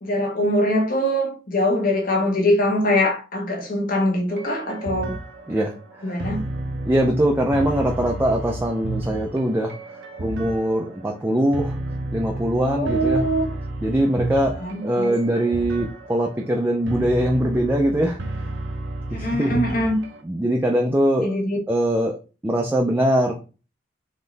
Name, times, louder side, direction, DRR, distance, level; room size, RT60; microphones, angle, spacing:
voice 1, 0.0-5.1 6.0-6.5 12.6-13.5 14.6-15.2 19.1-20.0 21.2-21.6, left 1 dB, 50° left, 1.3 m, -22 dB
sound 1, 4.3-20.2, right 2 dB, 75° right, 0.7 m, -32 dB
voice 2, 5.5-6.1 6.8-9.7 10.2-11.8 12.1-13.3 13.8-18.2 19.1-19.6 20.2-21.4 21.7-22.2 22.4-23.3, right 1 dB, 10° right, 0.5 m, -22 dB
3.9 x 3.1 x 4.0 m
head